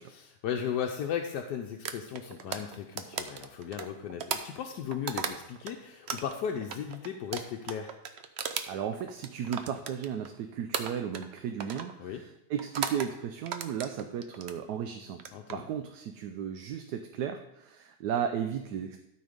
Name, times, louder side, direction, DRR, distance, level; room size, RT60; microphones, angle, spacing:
voice 1, 0.0-7.9 12.0-12.2 15.3-15.6, left 8 dB, 80° left, 3 dB, 1.3 m, -36 dB
sound 1, 1.9-5.7 6.1-10.4 10.7-11.3 11.6-11.9 12.6-13.1 13.5-14.6 15.1-15.5, right 7 dB, 55° right, 0.7 m, -36 dB
voice 2, 8.7-15.2 15.5-19.0, right 8 dB, 80° right, 7 dB, 1.2 m, -35 dB
12.5 x 4.5 x 5.1 m, 0.85 s
omnidirectional pair, 1.8 m